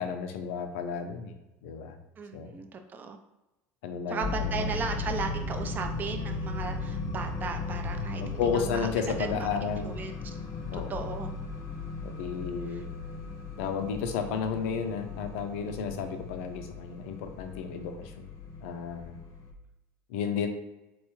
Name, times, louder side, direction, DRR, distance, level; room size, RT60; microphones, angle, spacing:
voice 1, 0.0-1.3 1.6-2.0 2.3-2.5 3.8-4.7 8.2-9.9 10.7-10.9 12.0-12.9 13.6-18.3 18.6-19.2 20.1-20.5, left 6 dB, 85° left, 6 dB, 0.5 m, -32 dB
voice 2, 2.2-3.2 4.1-8.9 9.2-10.1 10.7-11.3 12.7-12.8, right 5 dB, 25° right, 6 dB, 0.4 m, -36 dB
sound 1, 4.2-19.5, left 3 dB, 45° left, 0.6 m, -37 dB
4.0 x 2.2 x 3.0 m, 0.98 s
supercardioid pair, 125°, 7 cm